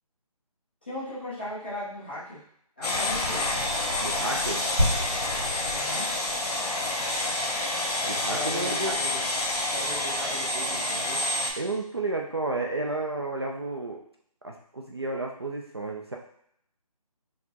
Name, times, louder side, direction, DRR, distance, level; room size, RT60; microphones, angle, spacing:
voice 1, 0.8-2.4 2.8-3.5 5.7-6.1 8.2-9.2 9.7-11.3, left 1 dB, 15° left, -11 dB, 0.7 m, -37 dB
sound 1, 2.8-11.5, left 2 dB, 80° left, 0.9 m, -28 dB
voice 2, 4.0-4.6 8.0-9.0 11.6-14.0 14.4-16.2, right 2 dB, 40° right, 0 dB, 0.4 m, -31 dB
sound 2, 4.8-8.7 9.0-9.1, equal, 25° right, 1.0 m, -32 dB
4.3 x 2.1 x 2.8 m, 0.69 s
figure-of-eight pair, 175°, 20 cm